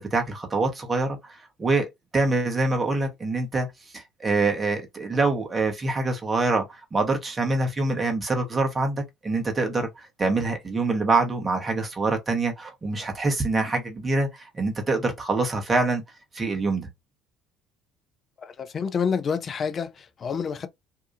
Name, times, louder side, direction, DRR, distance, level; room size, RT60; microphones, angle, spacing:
voice 1, 0.0-3.7 3.9-16.0 16.3-16.9, right 3 dB, 25° right, 1.1 m, -25 dB
voice 2, 18.4-20.7, left 6 dB, 40° left, 0.5 m, -28 dB
2.8 x 2.3 x 2.4 m
hypercardioid pair, 60°, 0 cm